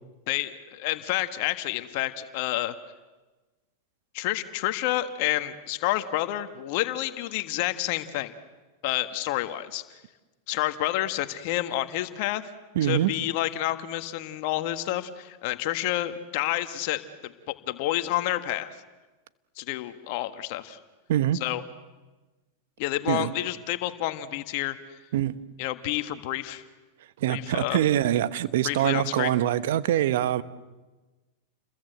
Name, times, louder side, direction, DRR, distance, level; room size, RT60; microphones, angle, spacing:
voice 1, 0.3-2.7 4.1-8.3 8.8-9.8 10.5-12.4 12.8-18.7 19.6-20.8 21.4-21.6 22.8-25.0 25.6-26.6 27.3-27.8 28.6-29.3, left 15 dB, 60° left, 9 dB, 1.6 m, -29 dB
voice 2, 12.7-13.1 21.1-21.4 23.1-23.3 25.1-25.3 27.2-30.4, right 12 dB, 70° right, 14 dB, 1.1 m, -24 dB
30.0 x 22.0 x 8.1 m, 1.2 s
hypercardioid pair, 110°, 0 cm